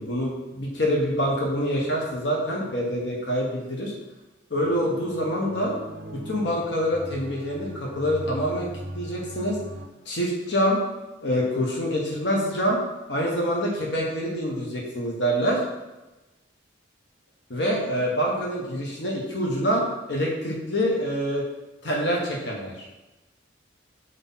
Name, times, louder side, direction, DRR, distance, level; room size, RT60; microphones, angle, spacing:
voice 1, 0.0-3.9 4.5-5.7 6.1-8.7 8.9-9.6 10.0-10.8 11.2-12.8 13.1-15.6 17.5-21.4 21.8-22.9, equal, 65° left, -2 dB, 1.1 m, -26 dB
sound 1, 4.6-9.9, right 1 dB, 55° right, 0.7 m, -39 dB
4.8 x 4.2 x 5.5 m, 1.1 s
head